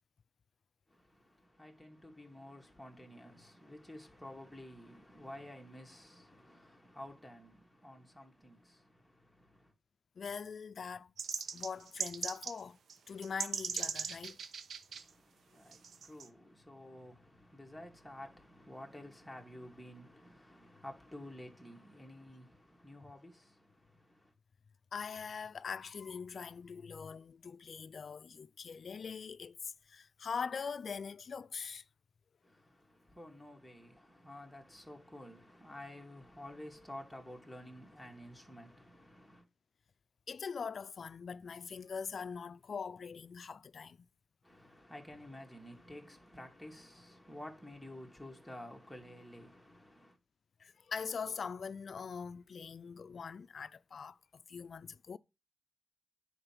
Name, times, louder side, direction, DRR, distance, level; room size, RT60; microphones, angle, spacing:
voice 1, 0.9-9.7 14.9-24.3 32.4-39.5 44.4-50.2, left 1 dB, ahead, 2.4 m, -51 dB
voice 2, 10.2-12.8 13.1-14.4 24.9-31.8 40.3-44.1 50.6-55.2, left 6 dB, 65° left, 0.4 m, -42 dB
sound 1, 11.2-12.6 12.9-13.0 13.2-15.0 15.7-16.3, right 6 dB, 85° right, 0.9 m, -39 dB
9.9 x 4.5 x 6.0 m
cardioid pair, 75°, 0 cm